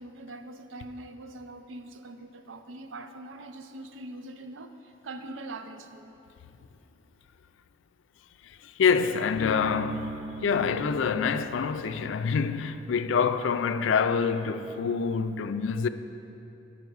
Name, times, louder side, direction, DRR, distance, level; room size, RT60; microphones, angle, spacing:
voice 1, 0.0-6.1, right 2 dB, 85° right, 0.5 m, -42 dB
voice 2, 8.8-10.2 10.4-15.9, left 6 dB, 80° left, 0.4 m, -26 dB
Bass guitar, 9.4-13.1, right 1 dB, 65° right, 1.6 m, -42 dB
9.2 x 6.1 x 4.7 m
head